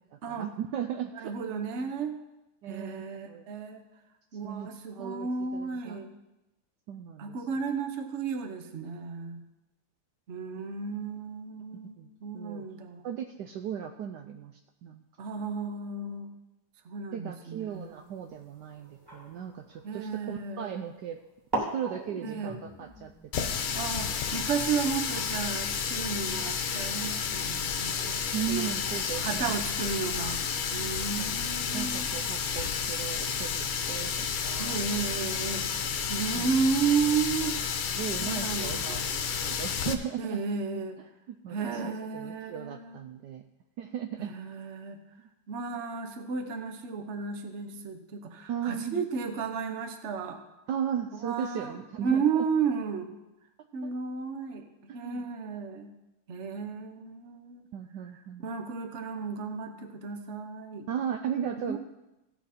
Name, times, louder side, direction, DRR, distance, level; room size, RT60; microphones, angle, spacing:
voice 1, 0.1-1.3 2.6-3.4 4.4-6.0 6.9-7.4 12.0-12.7 13.0-15.0 17.1-21.2 21.6-24.2 28.3-29.5 31.7-34.8 36.3-36.5 37.9-40.4 41.3-41.8 42.1-43.4 43.8-44.3 48.5-49.0 50.7-52.4 53.6-53.9 54.9-55.3 57.7-58.5 60.9-61.8, right 9 dB, 80° right, 5 dB, 0.9 m, -37 dB
voice 2, 1.2-2.1 2.7-3.8 4.3-6.1 7.2-9.4 10.3-13.0 15.2-16.3 16.8-18.0 19.8-20.8 22.2-22.6 23.7-28.7 29.2-30.4 30.7-32.1 34.6-37.5 38.2-39.0 40.2-41.0 41.5-43.0 44.2-45.0 45.5-50.4 51.2-53.1 53.7-54.7 54.9-55.9 56.3-57.7 58.4-60.9 61.6-61.8, right 5 dB, 50° right, 6 dB, 0.8 m, -33 dB
sound 1, 17.7-20.6 21.2-21.3 21.5-26.1, right 2 dB, 10° right, 2.2 m, -41 dB
Water tap faucet, 23.3-39.9, left 7 dB, 75° left, 1.7 m, -31 dB
16.0 x 6.1 x 4.2 m, 0.97 s
omnidirectional pair, 2.4 m